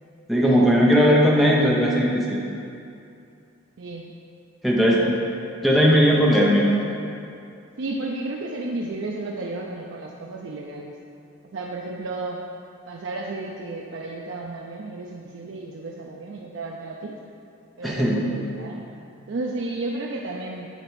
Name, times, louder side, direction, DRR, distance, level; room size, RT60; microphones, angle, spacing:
voice 1, 0.3-2.4 4.6-5.1 5.6-6.7 17.8-18.3, equal, ahead, -3 dB, 0.6 m, -18 dB
voice 2, 3.8-4.1 4.9-5.1 6.5-6.9 7.8-10.9 11.5-12.4 12.9-17.2 17.8-18.8 19.3-20.7, right 2 dB, 60° right, -1 dB, 0.4 m, -32 dB
8.0 x 4.1 x 4.6 m, 2.6 s
head